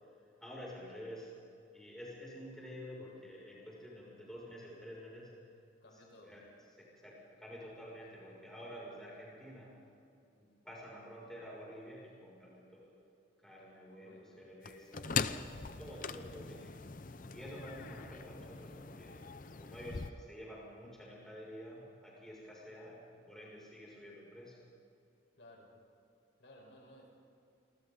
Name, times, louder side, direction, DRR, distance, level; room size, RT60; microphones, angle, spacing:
voice 1, 0.4-1.3 1.7-5.3 6.2-6.4 6.8-9.7 10.3-12.9 13.4-16.8 17.3-19.2 19.6-24.6, equal, 5° left, -5 dB, 6.7 m, -50 dB
voice 2, 5.8-6.4 13.9-14.5 25.4-25.8 26.4-27.1, left 1 dB, 70° left, 0 dB, 5.1 m, -58 dB
sound 1, 14.6-20.1, left 5 dB, 45° left, 0.7 m, -41 dB
28.5 x 25.5 x 4.1 m, 2.7 s
head